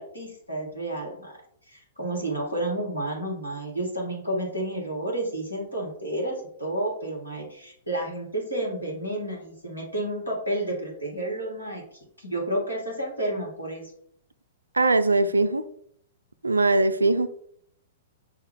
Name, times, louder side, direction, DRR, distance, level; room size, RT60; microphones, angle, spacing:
voice 1, 0.0-1.3 1.7-13.8, right 1 dB, 90° left, -2 dB, 1.5 m, -31 dB
voice 2, 14.7-15.6 16.4-17.3, right 2 dB, 80° right, 12 dB, 0.3 m, -21 dB
5.6 x 2.3 x 3.5 m, 0.65 s
figure-of-eight pair, 105°, 0 cm